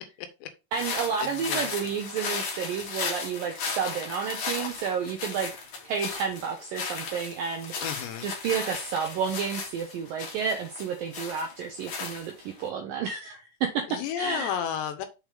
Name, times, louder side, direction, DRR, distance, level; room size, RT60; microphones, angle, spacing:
sound 1, 0.7-12.6, left 5 dB, 55° left, 2.5 m, -36 dB
voice 1, 0.7-5.6 5.9-7.7 8.2-14.6, right 6 dB, 80° right, 4 dB, 2.0 m, -31 dB
voice 2, 7.8-8.3 13.9-15.1, left 9 dB, 85° left, 8 dB, 3.1 m, -32 dB
6.9 x 4.9 x 3.5 m, 0.27 s
omnidirectional pair, 5.0 m